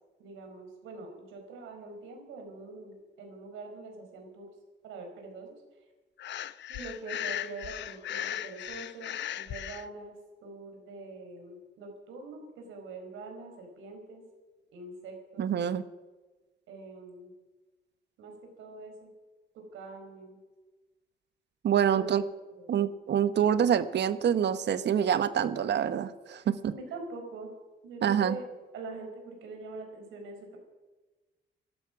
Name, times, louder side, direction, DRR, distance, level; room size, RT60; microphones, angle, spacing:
voice 1, 0.2-4.5 4.8-5.6 6.7-14.2 14.7-15.4 16.7-17.3 18.2-19.1 19.5-20.4 21.9-22.1 22.5-22.8 26.4-27.5 27.8-30.6, right 3 dB, 90° right, 3 dB, 4.7 m, -44 dB
Breathing, 6.2-9.8, left 11 dB, 65° left, 0.7 m, -37 dB
voice 2, 15.4-15.8 21.6-22.2 22.7-26.6 28.0-28.4, right 9 dB, 60° right, 13 dB, 1.1 m, -26 dB
17.5 x 12.5 x 6.0 m, 1.2 s
cardioid pair, 90°, 20 cm